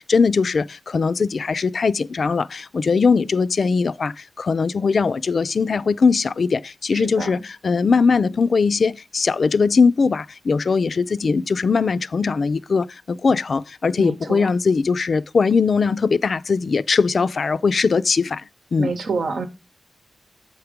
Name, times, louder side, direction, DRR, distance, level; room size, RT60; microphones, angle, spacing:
voice 1, 0.0-18.4 18.7-18.9, left 5 dB, 60° left, 0.4 m, -20 dB
voice 2, 6.9-7.4 14.0-14.5 18.8-19.5, right 4 dB, 75° right, 1.0 m, -28 dB
7.9 x 4.7 x 5.0 m
wide cardioid pair, 90°, 0 cm